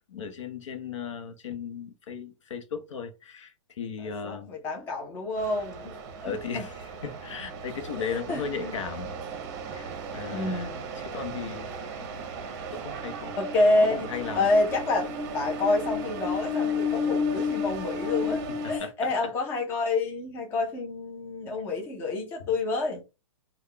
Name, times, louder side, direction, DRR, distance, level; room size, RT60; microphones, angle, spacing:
voice 1, 0.1-4.5 6.2-9.1 9.7-12.2 12.7-13.3 13.8-14.5 18.6-19.1, left 6 dB, 65° left, 0.8 m, -36 dB
voice 2, 4.0-5.9 6.2-6.7 8.1-8.7 10.3-10.8 13.4-14.1 14.4-23.0, left 2 dB, 15° left, 0.6 m, -28 dB
sound 1, 5.4-18.8, left 2 dB, 35° right, 0.7 m, -33 dB
3.8 x 2.3 x 3.3 m
hypercardioid pair, 160°, 17 cm